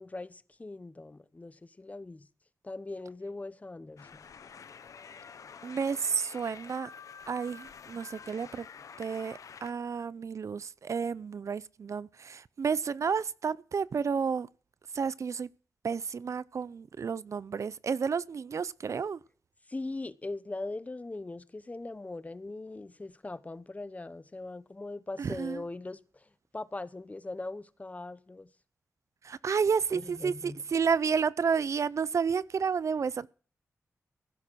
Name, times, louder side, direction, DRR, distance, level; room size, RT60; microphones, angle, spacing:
voice 1, 0.0-2.3 2.6-4.1 19.7-26.0 26.5-28.5 29.9-30.6, left 2 dB, 25° left, 0.8 m, -40 dB
sound 1, 4.0-9.7, left 6 dB, 75° left, 0.9 m, -48 dB
voice 2, 5.6-6.9 7.3-8.7 9.0-14.5 14.9-15.5 15.8-19.2 25.2-25.6 29.2-33.3, right 6 dB, 60° right, 0.5 m, -31 dB
15.5 x 7.3 x 6.1 m
wide cardioid pair, 85°, 6 cm